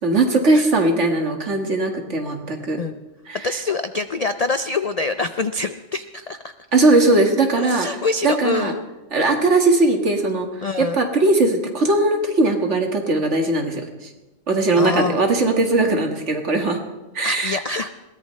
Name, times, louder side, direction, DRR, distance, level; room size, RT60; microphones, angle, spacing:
voice 1, 0.0-2.8 3.3-3.4 6.7-7.9 8.2-8.7 9.1-14.1 14.5-16.8 17.1-17.6, right 2 dB, 60° right, 3 dB, 2.1 m, -19 dB
voice 2, 3.4-6.5 7.5-8.8 9.2-9.4 10.6-11.0 14.8-15.2 17.2-17.9, left 3 dB, 75° left, 10 dB, 0.3 m, -25 dB
21.5 x 17.5 x 3.2 m, 1.1 s
omnidirectional pair, 1.4 m